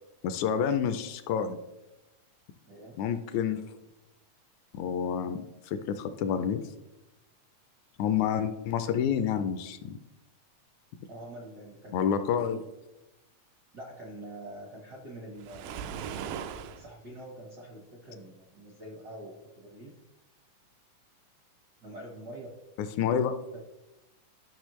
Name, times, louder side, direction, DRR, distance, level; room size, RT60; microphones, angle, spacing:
voice 1, 0.2-1.6 3.0-3.6 4.7-6.7 8.0-10.0 11.9-12.6 22.8-23.3, left 8 dB, 80° left, 9 dB, 1.8 m, -29 dB
voice 2, 2.6-3.0 11.0-12.7 13.7-16.0 16.7-20.0 21.8-22.5 23.5-23.6, right 1 dB, 70° right, -2 dB, 0.9 m, -45 dB
Waves surf, 15.4-16.9, right 8 dB, 90° right, 2.2 m, -38 dB
12.0 x 5.9 x 3.1 m, 0.99 s
omnidirectional pair, 3.7 m